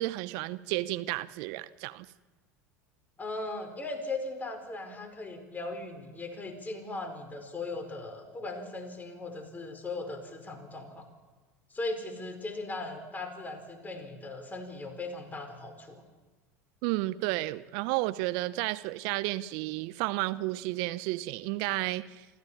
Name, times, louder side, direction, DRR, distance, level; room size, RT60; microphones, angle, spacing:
voice 1, 0.0-2.1 16.8-22.2, right 19 dB, 60° right, 0.7 m, -32 dB
voice 2, 3.2-11.1 11.7-16.0, left 2 dB, 20° left, 4.7 m, -38 dB
26.5 x 14.5 x 7.2 m
hypercardioid pair, 75°, 8 cm